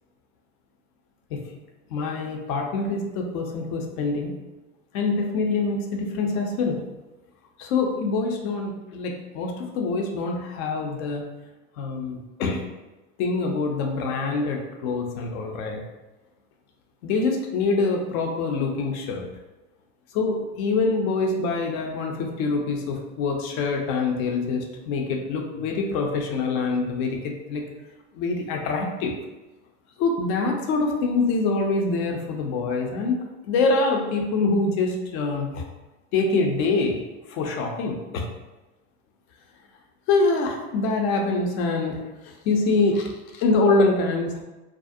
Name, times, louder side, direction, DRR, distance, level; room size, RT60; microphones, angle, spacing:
voice 1, 1.9-4.3 4.9-6.8 7.6-11.2 11.8-12.6 13.2-15.8 17.0-19.3 20.1-27.6 28.1-29.1 30.0-35.6 36.1-37.0 37.3-38.3 40.1-44.4, left 3 dB, 65° left, 2 dB, 0.6 m, -25 dB
2.5 x 2.0 x 2.5 m, 1.1 s
supercardioid pair, 115°, 46 cm